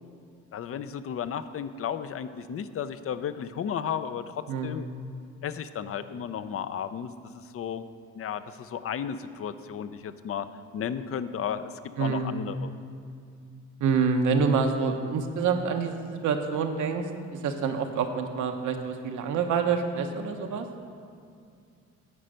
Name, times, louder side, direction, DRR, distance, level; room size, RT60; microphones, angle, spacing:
voice 1, 0.5-4.9 5.4-7.8 8.1-12.7, left 8 dB, 50° left, 12 dB, 0.6 m, -34 dB
voice 2, 4.5-4.8 12.0-12.4 13.8-17.0 17.4-20.7, right 5 dB, 75° right, 5 dB, 1.0 m, -27 dB
9.9 x 5.1 x 7.9 m, 2.4 s
cardioid pair, 90°, 30 cm